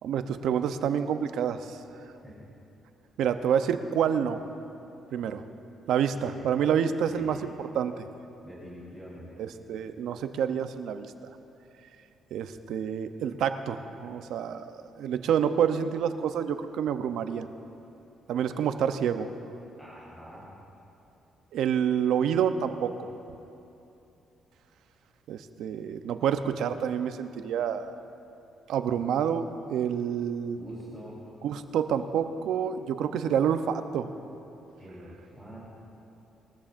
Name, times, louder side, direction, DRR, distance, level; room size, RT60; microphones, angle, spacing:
voice 1, 0.0-1.8 3.2-4.4 5.1-5.4 5.9-7.4 7.7-8.0 9.4-11.1 12.3-14.7 15.0-17.4 18.3-19.3 21.5-23.1 25.3-27.9 28.7-29.4 29.7-30.6 31.4-34.1, right 8 dB, 80° right, 9 dB, 0.7 m, -28 dB
voice 2, 6.1-6.4 7.1-7.4 8.4-9.3 19.8-20.5 30.5-31.2 34.8-35.8, equal, 10° left, -8 dB, 3.8 m, -45 dB
21.5 x 14.0 x 2.6 m, 2.8 s
cardioid pair, 90°, 0 cm